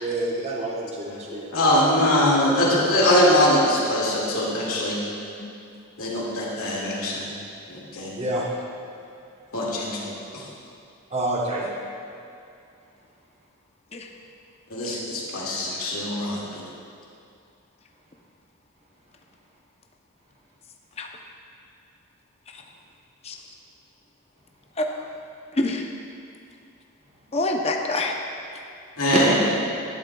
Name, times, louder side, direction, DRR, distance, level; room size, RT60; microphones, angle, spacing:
voice 1, 0.0-1.5 8.2-8.5 11.1-11.7 29.1-29.4, right 1 dB, 30° right, -3 dB, 1.1 m, -26 dB
voice 2, 1.5-5.0 6.0-7.3 7.7-8.1 9.5-10.5 14.7-16.6 29.0-29.4, left 1 dB, 80° left, -6 dB, 2.2 m, -22 dB
voice 3, 24.8-25.1 25.5-25.9 27.3-28.2, left 2 dB, 30° left, 2 dB, 0.6 m, -26 dB
12.0 x 11.0 x 2.3 m, 2.5 s
head